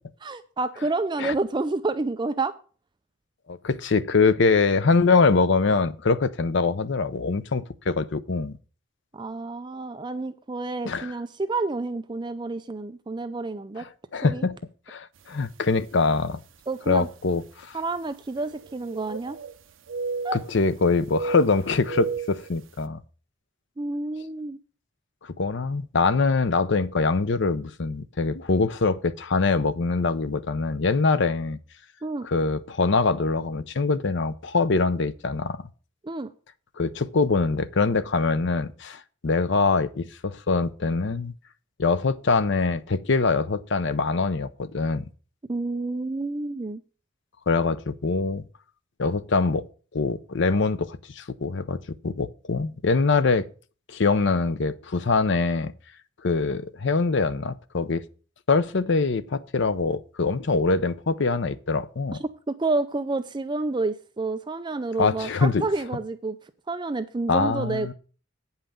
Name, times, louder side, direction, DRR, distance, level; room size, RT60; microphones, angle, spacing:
voice 1, 0.2-2.5 9.1-13.9 14.2-14.5 16.7-17.1 17.7-19.4 20.2-20.4 23.8-24.6 32.0-32.3 36.0-36.3 45.5-46.8 62.2-66.4 66.7-67.9, right 3 dB, 25° right, 0.5 m, -29 dB
voice 2, 3.5-8.6 10.8-11.1 14.1-14.5 14.9-16.4 16.9-17.8 20.5-23.0 25.2-31.6 32.2-35.6 36.8-41.3 41.8-45.1 47.5-48.4 49.0-49.6 49.9-53.5 53.9-55.7 56.2-58.0 58.5-62.2 65.0-65.6 67.3-67.9, left 4 dB, 65° left, 0.7 m, -23 dB
sound 1, 15.5-15.6 16.4-16.5 18.3-19.6 19.9-20.7 21.1-22.5, right 4 dB, 75° right, 0.7 m, -33 dB
8.9 x 5.7 x 6.5 m
head